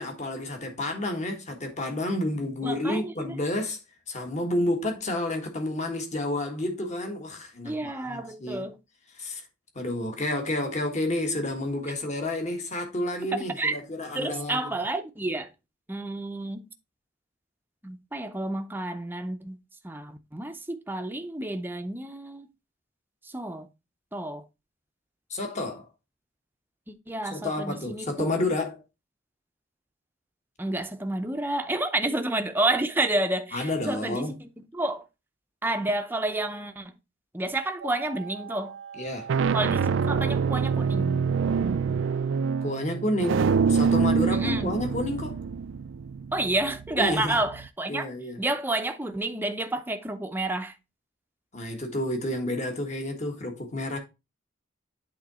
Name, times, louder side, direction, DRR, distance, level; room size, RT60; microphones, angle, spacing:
voice 1, 0.0-3.8 4.1-8.6 9.2-9.4 9.7-14.7 25.3-25.9 27.3-28.8 33.5-34.3 39.0-39.3 42.6-45.4 47.0-47.4 47.9-48.4 51.5-54.0, left 1 dB, 40° left, 1.6 m, -30 dB
voice 2, 2.6-3.4 7.6-8.8 13.6-13.8 14.1-15.5 15.9-16.7 17.8-19.6 19.8-22.5 23.2-23.7 24.1-24.4 26.9-28.4 30.6-35.1 35.6-36.9 37.3-38.7 39.5-41.2 44.4-44.8 46.3-48.1 48.4-50.7, right 2 dB, 10° right, 0.6 m, -30 dB
sound 1, 37.8-38.3 39.0-47.7, right 6 dB, 70° right, 0.4 m, -26 dB
8.4 x 3.7 x 4.2 m
head